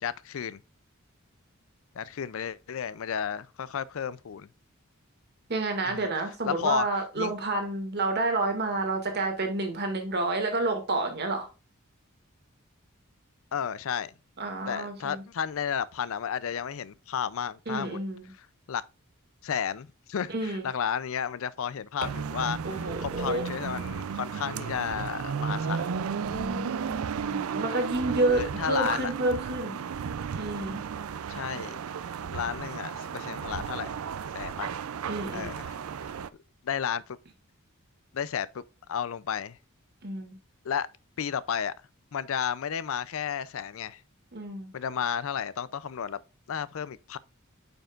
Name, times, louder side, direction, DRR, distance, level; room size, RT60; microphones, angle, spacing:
voice 1, 0.0-0.6 2.0-4.5 5.8-6.1 6.4-6.9 7.2-7.3 13.5-14.1 14.7-18.0 18.4-18.8 19.4-25.9 28.3-29.1 31.3-31.8 32.3-34.0 34.3-34.8 35.3-35.8 36.6-37.2 38.1-38.6 38.9-39.6 40.6-40.9 41.2-41.7 42.1-44.0 44.7-46.2 46.5-47.2, left 7 dB, 70° left, 0.4 m, -32 dB
voice 2, 5.5-11.5 14.4-15.2 17.7-18.3 20.3-20.7 22.6-23.4 26.3-29.8 30.3-30.8 35.1-35.6 40.0-40.4 44.3-44.7, right 2 dB, 50° right, 2.0 m, -29 dB
sound 1, 22.0-36.3, right 6 dB, 80° right, 0.4 m, -34 dB
8.8 x 5.4 x 2.4 m
head